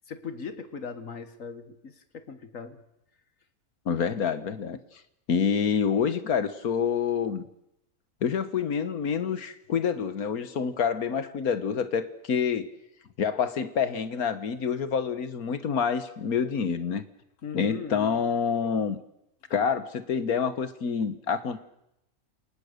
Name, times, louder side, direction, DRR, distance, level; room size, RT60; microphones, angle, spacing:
voice 1, 0.1-2.8 17.4-18.2, left 6 dB, 60° left, 10 dB, 1.9 m, -39 dB
voice 2, 3.9-4.8 5.3-7.4 8.2-12.7 13.2-17.0 17.5-19.0 19.5-21.6, left 6 dB, 80° left, 12 dB, 1.8 m, -27 dB
28.5 x 19.0 x 6.7 m, 0.82 s
omnidirectional pair, 1.5 m